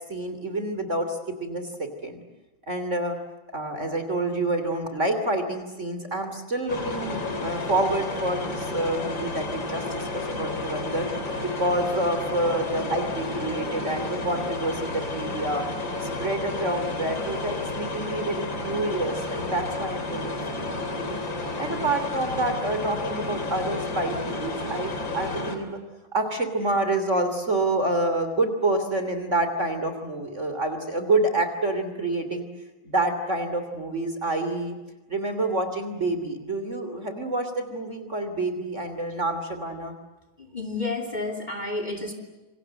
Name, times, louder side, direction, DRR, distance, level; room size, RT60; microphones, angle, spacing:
voice 1, 0.1-2.2 2.7-3.2 3.5-11.1 11.4-15.7 16.0-21.2 21.6-25.8 26.1-32.5 32.8-34.8 35.1-39.9, right 2 dB, 35° right, 8 dB, 3.3 m, -28 dB
sound 1, 6.7-25.6, left 2 dB, 60° left, 4.1 m, -31 dB
voice 2, 40.4-42.1, left 2 dB, 20° left, 7 dB, 3.3 m, -31 dB
27.5 x 26.0 x 7.8 m, 1.1 s
omnidirectional pair, 2.3 m